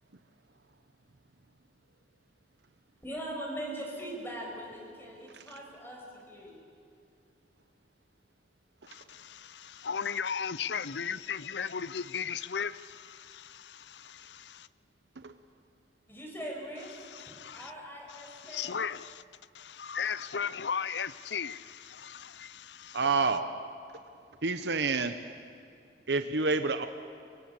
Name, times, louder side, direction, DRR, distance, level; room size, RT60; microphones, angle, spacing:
voice 1, 3.0-6.6 16.1-16.9 17.2-18.8, right 1 dB, 15° left, 5.9 m, -41 dB
voice 2, 8.9-14.7 17.0-17.7 18.2-19.2 19.5-23.1, left 7 dB, 70° left, 0.7 m, -36 dB
voice 3, 22.9-23.5 24.4-25.1 26.1-26.9, right 4 dB, 70° right, 1.0 m, -28 dB
24.0 x 24.0 x 8.3 m
head